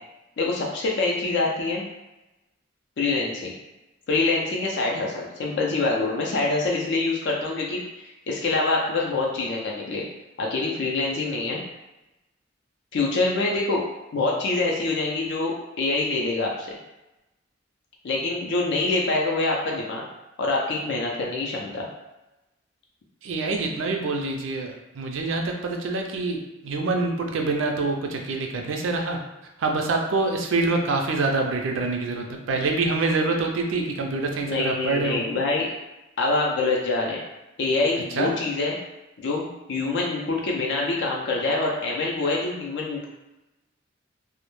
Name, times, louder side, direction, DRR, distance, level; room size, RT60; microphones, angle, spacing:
voice 1, 0.4-1.8 3.0-3.5 4.1-7.8 8.3-10.0 10.4-11.6 12.9-13.8 14.1-16.8 18.0-20.0 20.4-21.9 34.4-35.7 36.2-37.2 37.6-38.8 39.2-43.1, left 3 dB, 60° left, -2 dB, 0.4 m, -25 dB
voice 2, 23.2-29.2 29.6-35.3 38.2-38.3, right 3 dB, 75° right, 2 dB, 0.4 m, -26 dB
2.1 x 2.0 x 3.0 m, 0.98 s
head